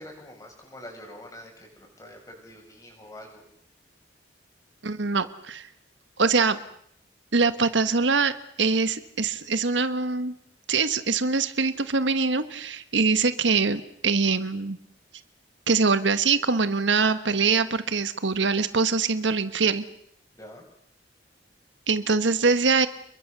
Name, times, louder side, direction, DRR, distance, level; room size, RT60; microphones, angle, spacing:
voice 1, 0.0-3.4 20.3-20.6, left 1 dB, 20° left, 2 dB, 7.4 m, -45 dB
voice 2, 4.8-5.7 6.2-6.6 7.3-10.3 10.7-14.8 15.7-19.8 21.9-22.9, right 4 dB, 80° right, 12 dB, 1.4 m, -23 dB
29.5 x 22.0 x 6.8 m, 0.68 s
head